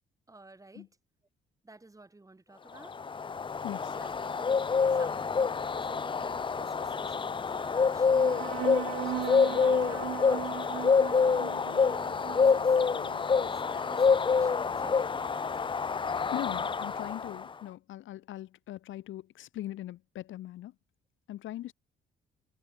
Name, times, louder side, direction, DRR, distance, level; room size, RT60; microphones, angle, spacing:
voice 1, 0.3-0.9 1.6-3.0 3.9-4.6 4.9-12.8 13.4-15.5 16.3-16.7, right 2 dB, 15° right, 3.5 m, -51 dB
Bird, 2.8-17.5, left 5 dB, 25° left, 0.5 m, -27 dB
voice 2, 3.6-4.0 16.3-20.7 21.3-21.7, left 14 dB, 75° left, 1.0 m, -40 dB
sound 1, 8.1-15.1, right 17 dB, 85° right, 0.6 m, -39 dB
cardioid pair, 90°, 20 cm